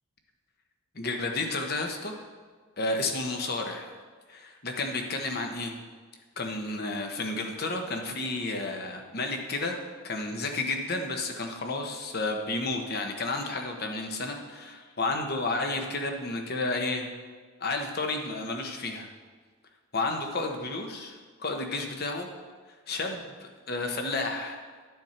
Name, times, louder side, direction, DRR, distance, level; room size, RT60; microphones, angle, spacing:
voice 1, 0.9-2.2 2.8-3.9 4.3-5.8 6.4-17.1 17.6-19.1 19.9-22.3 22.9-24.6, left 2 dB, 50° left, 3 dB, 1.1 m, -31 dB
11.5 x 7.0 x 4.4 m, 1.5 s
head